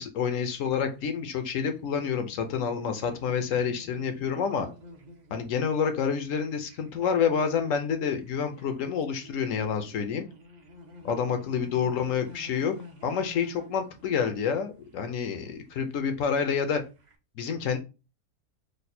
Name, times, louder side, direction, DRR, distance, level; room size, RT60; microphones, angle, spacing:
voice 1, 0.0-4.7 5.3-10.3 11.0-12.8 13.0-16.8 17.4-17.8, left 6 dB, 70° left, 8 dB, 0.9 m, -28 dB
sound 1, 0.5-17.1, left 2 dB, 45° right, 0.6 m, -51 dB
3.2 x 2.1 x 4.2 m, 0.30 s
omnidirectional pair, 1.5 m